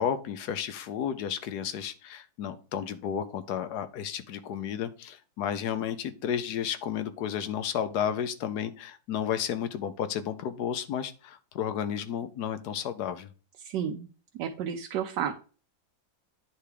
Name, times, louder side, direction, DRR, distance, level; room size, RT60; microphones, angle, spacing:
voice 1, 0.0-13.3, left 9 dB, 75° left, 11 dB, 1.3 m, -32 dB
voice 2, 13.6-14.1 14.4-15.3, right 8 dB, 90° right, 4 dB, 1.3 m, -31 dB
9.8 x 3.4 x 4.9 m, 0.38 s
omnidirectional pair, 1.8 m